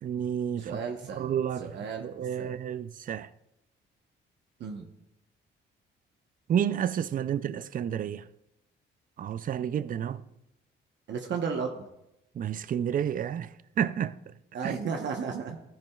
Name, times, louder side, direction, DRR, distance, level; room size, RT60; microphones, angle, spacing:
voice 1, 0.0-0.8 1.2-1.7 2.0-3.3 6.5-8.2 9.2-10.2 12.4-13.5 13.8-14.1 14.6-14.7, right 9 dB, 45° right, 0.5 m, -30 dB
voice 2, 0.6-2.1 2.4-2.5 4.6-4.8 11.1-11.8 14.5-15.6, right 6 dB, 65° right, 1.1 m, -34 dB
14.0 x 10.5 x 2.4 m
cardioid pair, 90°, 20 cm